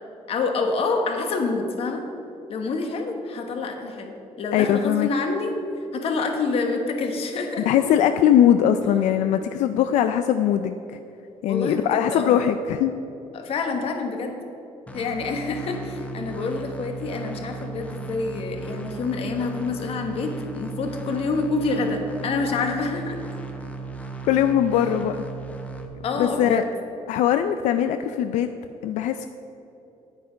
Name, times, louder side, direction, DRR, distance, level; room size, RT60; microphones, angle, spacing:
voice 1, 0.3-2.0 2.5-5.5 5.9-7.7 11.5-12.4 13.3-14.4 14.9-23.2 26.0-26.6, left 3 dB, 55° left, 4 dB, 1.3 m, -27 dB
voice 2, 4.5-5.1 7.7-11.0 11.4-12.9 24.2-25.2 26.2-26.6 27.1-28.5 28.8-29.3, left 10 dB, 90° left, 9 dB, 0.4 m, -21 dB
sound 1, 14.9-25.9, right 4 dB, 10° left, 0.9 m, -36 dB
9.5 x 8.9 x 5.1 m, 2.9 s
cardioid pair, 140°, 12 cm